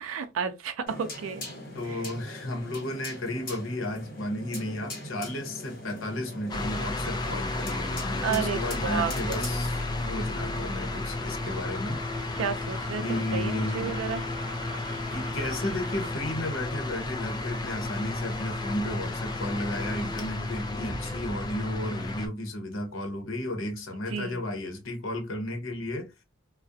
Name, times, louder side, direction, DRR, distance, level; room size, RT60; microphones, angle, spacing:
voice 1, 0.0-1.5 8.2-9.4 12.4-14.2 24.1-24.4, right 6 dB, 90° right, 0.4 m, -31 dB
sound 1, 0.9-10.1, left 1 dB, 45° left, 1.2 m, -42 dB
voice 2, 1.7-12.0 13.0-14.0 15.1-26.1, left 1 dB, 80° left, 0.8 m, -33 dB
sound 2, 6.5-22.3, left 2 dB, 20° left, 0.4 m, -32 dB
sound 3, 6.5-6.7 9.2-9.3 9.6-9.9 10.1-16.1, right 3 dB, 30° right, 0.6 m, -46 dB
2.3 x 2.0 x 2.6 m
head